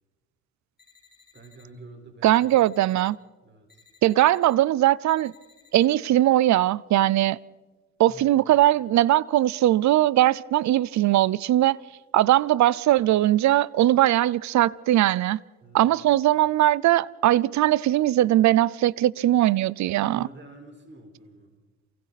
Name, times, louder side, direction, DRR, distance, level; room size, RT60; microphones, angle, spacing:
sound 1, 0.8-1.6 2.2-3.1 3.7-4.5 5.1-5.9, left 5 dB, 30° left, 5.2 m, -58 dB
voice 1, 1.3-2.6 3.4-3.8 8.0-8.3 15.6-15.9 20.1-21.5, right 2 dB, 40° right, 4.7 m, -47 dB
voice 2, 2.2-3.2 4.0-5.3 5.7-7.4 8.0-11.8 12.1-15.4 15.7-20.2, right 14 dB, 65° right, 0.6 m, -20 dB
28.0 x 24.5 x 4.2 m
cardioid pair, 90°, 30 cm